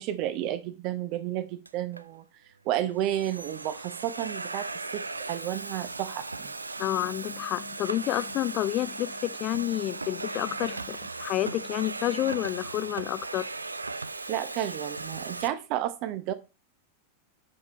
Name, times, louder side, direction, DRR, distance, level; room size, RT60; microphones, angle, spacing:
voice 1, 0.0-2.2 2.6-4.7 4.9-6.5 14.3-16.3, right 12 dB, 40° right, 0.8 m, -31 dB
Domestic sounds home sounds, 1.7-2.0 2.8-15.5, right 3 dB, 80° right, 0.4 m, -37 dB
voice 2, 6.8-13.5, left 15 dB, 35° left, 0.5 m, -29 dB
9.6 x 5.2 x 3.0 m
figure-of-eight pair, 90°, 0 cm